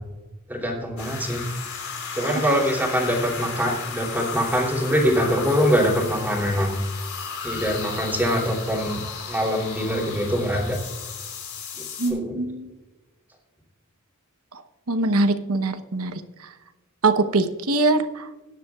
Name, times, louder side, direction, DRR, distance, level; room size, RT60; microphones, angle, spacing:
voice 1, 0.5-1.4 2.1-6.7 7.4-9.0 9.3-10.8 11.8-11.9 12.1-12.4, equal, 10° right, -2 dB, 2.9 m, -23 dB
sound 1, 1.0-12.1, left 5 dB, 80° left, 3.8 m, -34 dB
voice 2, 12.0-12.7 14.9-16.1 17.0-18.3, right 2 dB, 80° right, 9 dB, 0.9 m, -22 dB
20.0 x 10.0 x 2.4 m, 1.1 s
head